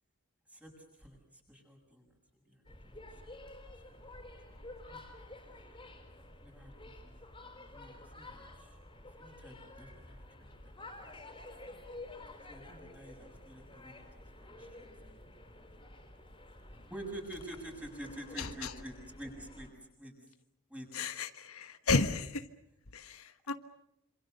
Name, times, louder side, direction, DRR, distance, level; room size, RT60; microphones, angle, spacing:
voice 1, 1.0-2.0 2.4-2.9 3.6-4.2 4.8-5.0 6.4-7.2 7.5-8.8 9.2-10.5 12.5-14.9 16.9-19.7 20.0-20.1 20.7-20.9 21.9-22.0, right 1 dB, 5° right, 2 dB, 6.9 m, -48 dB
sound 1, 2.6-19.7, left 1 dB, 20° left, 5.0 m, -51 dB
voice 2, 18.4-18.7 20.9-22.2 22.9-23.5, left 3 dB, 75° left, 9 dB, 1.3 m, -33 dB
27.0 x 27.0 x 6.7 m, 0.82 s
head